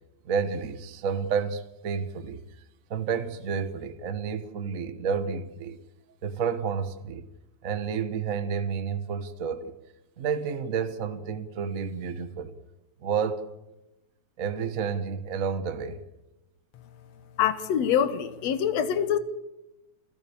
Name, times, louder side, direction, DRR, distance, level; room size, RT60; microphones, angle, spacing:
voice 1, 0.2-2.4 2.9-5.8 6.2-7.3 7.6-9.7 10.2-12.6 13.0-13.4 14.4-16.0, right 6 dB, 60° right, 0.8 m, -30 dB
voice 2, 17.4-19.2, left 9 dB, 65° left, 2.3 m, -25 dB
28.5 x 15.5 x 7.0 m
omnidirectional pair, 3.3 m